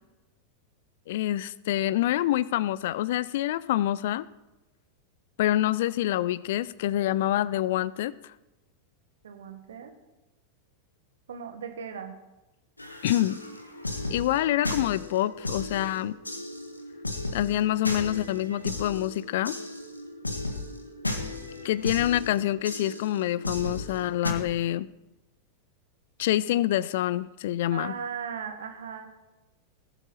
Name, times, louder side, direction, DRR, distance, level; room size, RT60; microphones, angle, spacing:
voice 1, 1.1-4.3 5.4-8.3 13.0-13.4 14.1-16.2 17.3-19.5 21.6-24.9 26.2-27.9, left 13 dB, 55° left, 20 dB, 0.4 m, -26 dB
voice 2, 9.2-10.0 11.3-12.1 27.7-29.1, right 7 dB, 65° right, 7 dB, 1.5 m, -37 dB
sound 1, 12.8-24.3, left 2 dB, 85° left, 1.3 m, -35 dB
19.5 x 8.1 x 4.3 m, 1.0 s
figure-of-eight pair, 90°, 0 cm